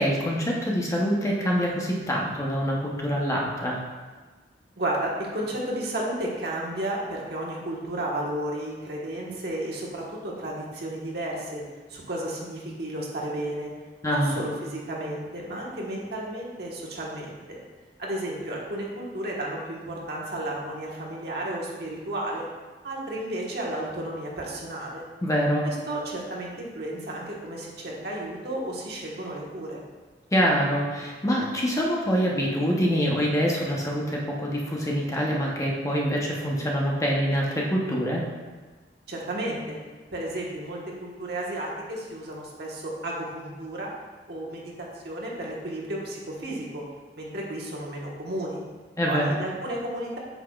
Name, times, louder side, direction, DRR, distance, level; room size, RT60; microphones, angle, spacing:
voice 1, 0.0-3.8 14.0-14.3 25.2-25.7 30.3-38.3 49.0-49.3, equal, 20° left, -3 dB, 0.9 m, -25 dB
voice 2, 4.8-11.6 11.9-13.7 14.1-17.6 18.0-22.5 22.8-25.0 25.6-29.8 39.1-39.8 40.1-43.9 44.3-46.8 47.1-48.6 49.1-50.2, right 1 dB, 65° right, -3 dB, 1.4 m, -33 dB
8.1 x 5.8 x 2.4 m, 1.3 s
head